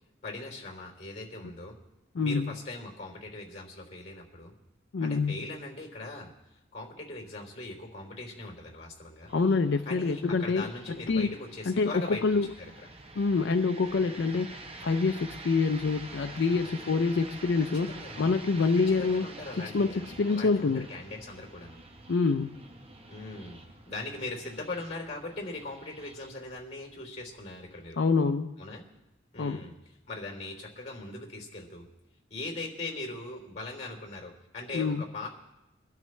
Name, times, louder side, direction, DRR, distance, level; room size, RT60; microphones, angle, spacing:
voice 1, 0.2-1.8 2.2-4.5 5.0-6.3 6.7-9.3 9.8-12.2 12.6-12.9 17.9-18.4 18.9-21.8 23.1-28.0 28.6-28.8 29.3-29.7 30.1-31.9 32.3-35.3, left 2 dB, 35° left, 2 dB, 3.4 m, -40 dB
voice 2, 2.1-2.6 4.9-5.4 9.3-11.3 11.7-12.5 13.2-19.3 19.6-20.9 22.1-22.6 28.0-28.6 29.4-29.7 34.7-35.0, left 4 dB, 80° left, 8 dB, 0.5 m, -26 dB
sound 1, 9.3-28.2, right 2 dB, 30° right, 0.9 m, -48 dB
23.5 x 12.5 x 3.2 m, 0.95 s
head